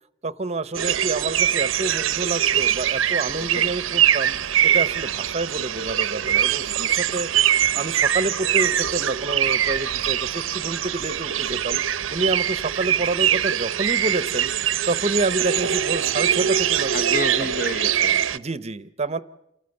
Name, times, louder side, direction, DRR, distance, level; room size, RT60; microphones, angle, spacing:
voice 1, 0.2-4.3 4.6-7.3 7.7-11.8 12.1-14.5 14.9-17.0 18.3-19.2, right 2 dB, 35° right, 16 dB, 0.8 m, -28 dB
sound 1, 0.7-18.4, right 10 dB, 80° right, 0.7 m, -23 dB
voice 2, 6.7-7.0 16.9-18.2, left 3 dB, 45° left, 12 dB, 0.9 m, -30 dB
28.0 x 15.0 x 7.9 m, 0.82 s
head